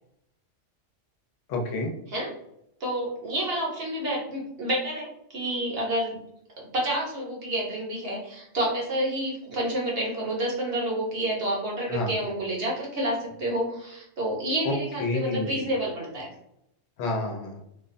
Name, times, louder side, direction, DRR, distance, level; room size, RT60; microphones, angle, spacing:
voice 1, 1.5-1.9 11.9-12.1 14.6-15.6 17.0-17.6, left 2 dB, 75° left, 1 dB, 0.9 m, -29 dB
voice 2, 2.8-6.2 6.7-16.3, right 1 dB, 55° right, -3 dB, 0.9 m, -29 dB
2.5 x 2.1 x 2.5 m, 0.78 s
omnidirectional pair, 1.3 m